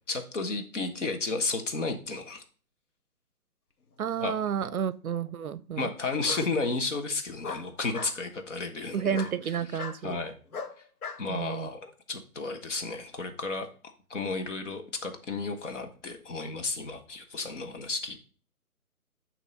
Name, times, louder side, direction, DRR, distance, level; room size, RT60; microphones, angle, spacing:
voice 1, 0.1-2.4 4.2-4.3 4.6-4.8 5.8-9.3 10.0-10.3 11.2-13.7 14.1-18.2, left 3 dB, 50° left, 1.2 m, -33 dB
voice 2, 4.0-5.9 8.9-10.2 11.3-11.7, right 8 dB, 70° right, 0.5 m, -31 dB
Bark, 4.1-4.7 6.2-6.5 7.4-8.2 9.1-9.4 9.8-10.0 10.5-11.2, left 4 dB, 75° left, 1.1 m, -38 dB
8.1 x 3.0 x 5.5 m
hypercardioid pair, 160°, 45 cm